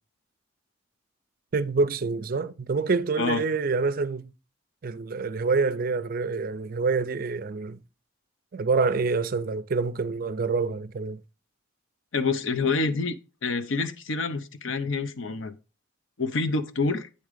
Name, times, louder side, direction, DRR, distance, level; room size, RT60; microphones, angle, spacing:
voice 1, 1.5-4.3 4.8-7.8 8.5-11.2, right 4 dB, 45° right, 0.4 m, -26 dB
voice 2, 12.1-13.2 13.4-15.6 16.2-17.1, left 4 dB, 75° left, 0.7 m, -27 dB
8.4 x 3.6 x 5.0 m
head